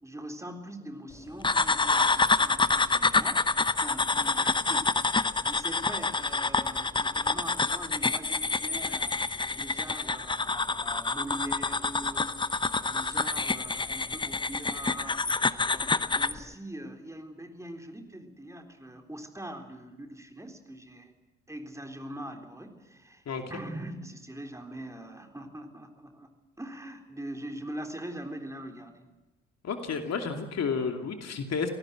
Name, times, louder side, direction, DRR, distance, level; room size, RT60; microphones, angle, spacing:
voice 1, 0.0-15.2 15.7-21.1 21.5-23.2 23.5-26.3 26.6-29.1, right 1 dB, 10° right, 3 dB, 3.8 m, -42 dB
sound 1, 1.4-16.4, left 3 dB, 15° left, 0.9 m, -27 dB
voice 2, 29.6-31.7, left 5 dB, 45° left, 5 dB, 2.7 m, -31 dB
25.0 x 18.0 x 7.9 m, 1.1 s
figure-of-eight pair, 50°, 37 cm